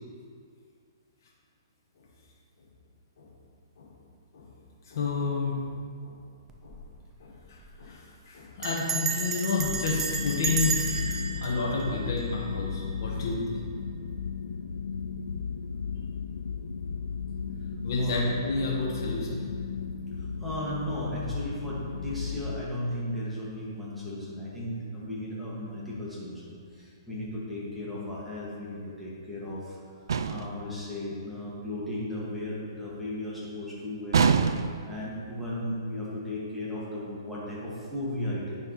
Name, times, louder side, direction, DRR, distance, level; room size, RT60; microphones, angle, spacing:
voice 1, 4.9-5.6 6.0-6.1 6.6-6.8 7.2-13.7 17.8-19.5, left 4 dB, 60° left, -3 dB, 1.3 m, -31 dB
Bell, 6.5-6.9 7.1-7.2 7.5-7.8 8.6-12.7, right 5 dB, 15° right, 0.5 m, -33 dB
sound 1, 9.6-22.6, left 5 dB, 85° left, 0.4 m, -35 dB
voice 2, 20.4-29.8 30.2-38.6, left 1 dB, ahead, -9 dB, 1.9 m, -35 dB
sound 2, 30.1-30.6 34.1-34.9, right 6 dB, 75° right, 0.4 m, -24 dB
9.1 x 6.2 x 3.1 m, 2.2 s
hypercardioid pair, 135°, 2 cm